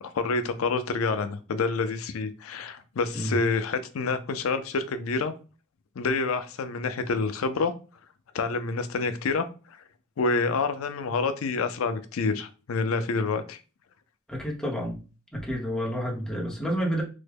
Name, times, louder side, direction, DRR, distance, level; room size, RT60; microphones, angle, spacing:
voice 1, 0.0-5.3 6.0-7.7 8.3-9.8 10.2-13.6, left 4 dB, 85° left, 0.4 m, -28 dB
voice 2, 14.3-15.0 15.3-17.0, equal, 5° left, 0.8 m, -29 dB
3.4 x 2.1 x 3.4 m
head